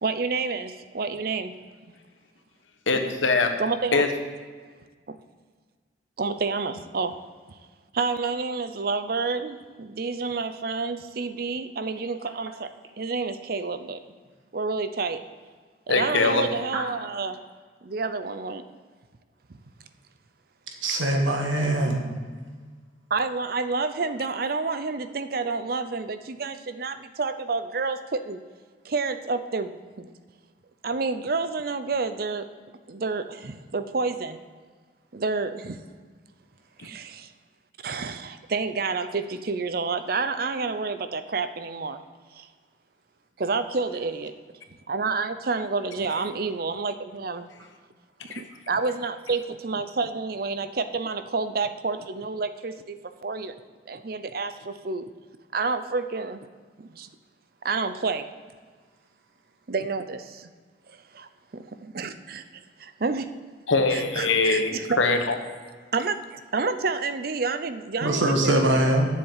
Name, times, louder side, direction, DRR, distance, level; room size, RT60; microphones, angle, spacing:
voice 1, 0.0-1.5 3.6-4.1 5.1-5.2 6.2-7.1 7.9-12.7 13.0-14.0 14.5-15.2 15.9-17.4 17.8-18.6 19.5-19.6 23.1-28.4 28.8-29.7 30.0-30.1 30.8-32.5 32.9-34.4 35.1-35.8 36.9-37.0 37.8-42.0 42.3-42.5 43.4-44.3 44.9-47.5 48.4-53.5 53.9-55.0 55.5-56.4 57.0-57.1 57.6-58.2 59.7-60.5 60.9-61.0 61.8-62.4 62.8-63.2 63.9-65.0 65.9-68.5, right 4 dB, 50° right, 10 dB, 0.6 m, -29 dB
voice 2, 2.9-3.5 3.9-4.1 15.9-16.4 63.7-65.4, left 3 dB, 85° left, 5 dB, 1.1 m, -22 dB
voice 3, 20.8-22.0 68.0-69.1, right 1 dB, 90° right, 2 dB, 1.6 m, -22 dB
8.1 x 7.1 x 7.3 m, 1.5 s
head